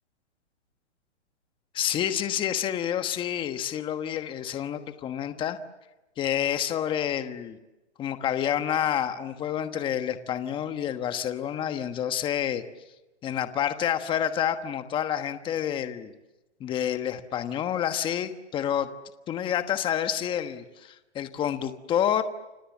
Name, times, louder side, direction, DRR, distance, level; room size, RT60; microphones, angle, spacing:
voice 1, 1.7-5.6 6.2-7.6 8.0-12.6 13.2-16.1 16.6-18.9 19.3-22.2, left 10 dB, 15° left, 9 dB, 1.2 m, -28 dB
30.0 x 25.5 x 7.3 m, 1.0 s
hypercardioid pair, 155°, 35 cm